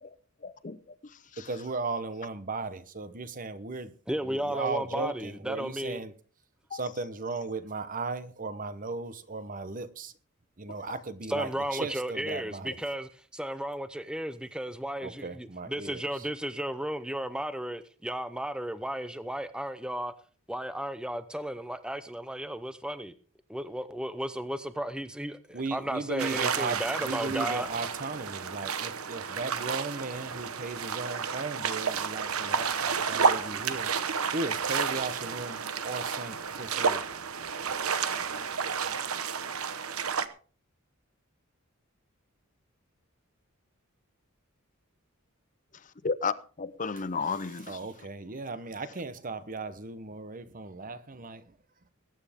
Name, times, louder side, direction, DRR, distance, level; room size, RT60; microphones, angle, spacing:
voice 1, 0.4-1.5 6.7-6.8 10.9-11.0 46.0-47.8, left 5 dB, 35° left, 0.6 m, -33 dB
voice 2, 1.4-3.9 4.2-6.1 6.7-10.1 10.6-12.7 15.0-16.0 25.5-34.0 34.3-37.1 47.6-51.5, right 3 dB, 40° right, 1.0 m, -36 dB
voice 3, 4.1-6.0 11.3-20.1 20.5-23.1 23.5-27.7, right 1 dB, 5° right, 0.6 m, -34 dB
sound 1, 26.2-40.3, right 6 dB, 90° right, 1.1 m, -31 dB
21.0 x 9.5 x 3.6 m
head